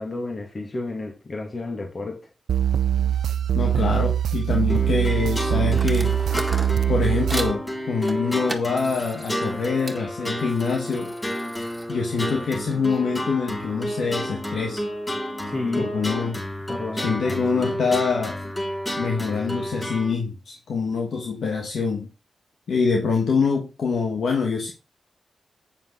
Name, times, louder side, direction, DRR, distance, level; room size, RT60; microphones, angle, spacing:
voice 1, 0.0-2.2 15.5-17.7, left 2 dB, 45° left, 1 dB, 2.3 m, -32 dB
sound 1, 2.5-7.5, right 10 dB, 90° right, 0.4 m, -22 dB
voice 2, 3.5-6.1 6.9-11.1 11.9-14.8 15.8-16.4 17.0-18.4 19.0-22.1 22.7-24.7, left 5 dB, 75° left, 1 dB, 1.6 m, -25 dB
sound 2, 4.7-20.1, equal, 15° left, 5.4 m, -31 dB
sound 3, 5.7-7.6 8.0-10.0 10.4-13.0, right 2 dB, 20° right, 1.8 m, -37 dB
9.1 x 6.6 x 4.0 m, 0.30 s
cardioid pair, 70°, 0 cm